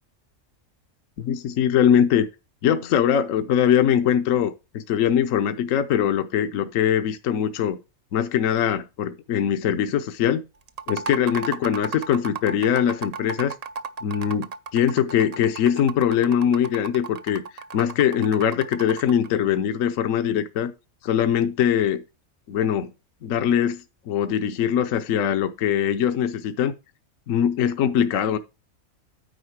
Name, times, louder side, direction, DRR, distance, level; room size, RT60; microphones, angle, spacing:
voice 1, 1.2-2.3 2.6-7.8 8.1-10.4 10.9-13.5 14.0-20.7 21.0-22.0 22.5-22.9 23.2-26.7 27.3-28.4, left 9 dB, 75° left, 1.1 m, -22 dB
sound 1, 10.7-19.3, right 5 dB, 50° right, 0.4 m, -35 dB
9.4 x 5.5 x 4.6 m
omnidirectional pair, 1.4 m